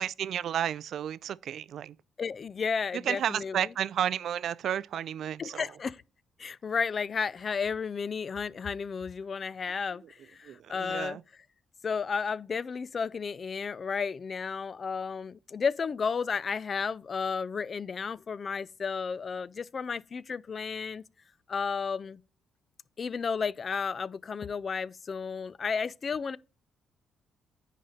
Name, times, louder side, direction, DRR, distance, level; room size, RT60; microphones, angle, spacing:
voice 1, 0.0-1.9 2.9-5.7 10.0-10.1 10.4-11.2, right 10 dB, 70° right, 0.3 m, -32 dB
voice 2, 2.2-3.6 5.4-6.0 6.4-11.2 11.8-21.0 21.5-22.2 23.0-26.4, left 5 dB, 40° left, 0.4 m, -33 dB
10.0 x 4.1 x 5.0 m
cardioid pair, 90°, 0 cm